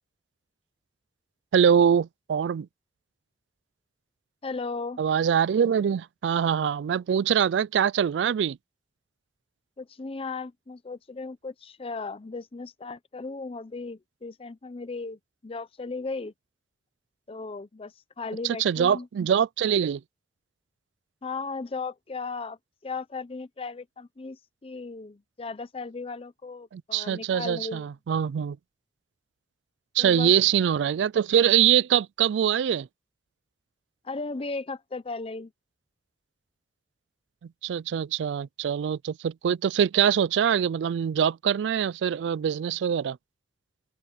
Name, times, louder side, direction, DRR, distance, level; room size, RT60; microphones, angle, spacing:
voice 1, 1.5-2.7 5.0-8.6 18.4-20.0 26.7-28.6 30.0-32.9 37.6-43.2, right 8 dB, 75° right, 0.3 m, -23 dB
voice 2, 4.4-5.0 9.8-16.3 17.3-19.1 21.2-22.6 22.8-27.9 30.0-30.3 34.0-35.5, left 3 dB, 30° left, 0.6 m, -36 dB
open air
head